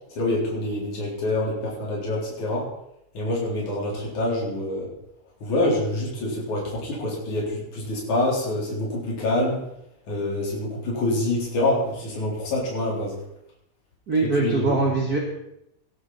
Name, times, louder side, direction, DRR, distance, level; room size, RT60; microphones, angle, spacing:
voice 1, 0.2-2.7 3.2-4.9 5.4-9.7 10.1-13.2 14.4-14.8, left 1 dB, 75° left, -4 dB, 5.3 m, -26 dB
voice 2, 14.1-15.2, right 3 dB, 35° right, -1 dB, 1.8 m, -22 dB
18.0 x 11.5 x 4.1 m, 0.82 s
omnidirectional pair, 3.5 m